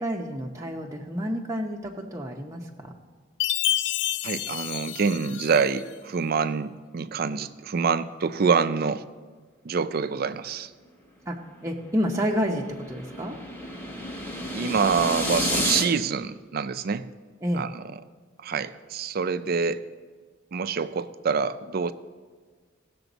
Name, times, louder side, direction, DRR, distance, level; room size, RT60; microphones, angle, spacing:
voice 1, 0.0-2.9 11.3-13.4 17.4-17.7, equal, 15° right, -1 dB, 0.7 m, -29 dB
Chime, 3.4-5.9, left 12 dB, 60° left, 0.4 m, -29 dB
voice 2, 4.2-9.0 9.7-10.7 14.5-17.1 17.5-17.8 18.4-19.8 20.5-21.9, right 5 dB, 50° right, 13 dB, 0.4 m, -26 dB
sound 1, 11.6-15.9, left 1 dB, 10° left, 1.3 m, -31 dB
17.5 x 6.9 x 4.0 m, 1.5 s
head